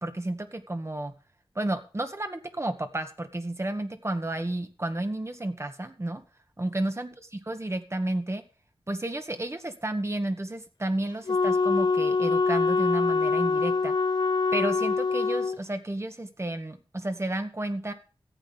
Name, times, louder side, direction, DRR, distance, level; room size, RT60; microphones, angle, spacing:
voice 1, 0.0-1.1 1.6-6.2 6.6-7.1 7.5-8.4 8.9-13.9 14.5-17.9, right 1 dB, 30° right, 8 dB, 1.8 m, -31 dB
Wind instrument woodwind instrument, 11.3-15.6, left 4 dB, 55° left, 0.5 m, -24 dB
14.0 x 8.6 x 5.5 m, 0.35 s
wide cardioid pair, 65°, 9 cm